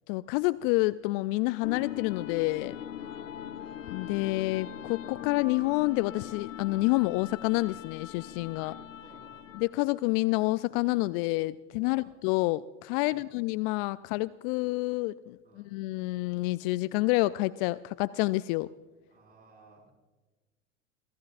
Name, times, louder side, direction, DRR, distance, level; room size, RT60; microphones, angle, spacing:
voice 1, 0.1-2.7 3.9-8.7 9.5-18.7, left 21 dB, 50° left, 17 dB, 0.4 m, -28 dB
sound 1, 1.6-9.8, left 10 dB, 85° left, 0.7 m, -41 dB
voice 2, 3.0-3.4 8.5-9.6 11.8-12.1 13.0-13.4 15.4-15.7 19.1-19.9, right 3 dB, 25° right, -1 dB, 6.0 m, -58 dB
26.5 x 16.0 x 2.5 m, 1.3 s
hypercardioid pair, 80°, 38 cm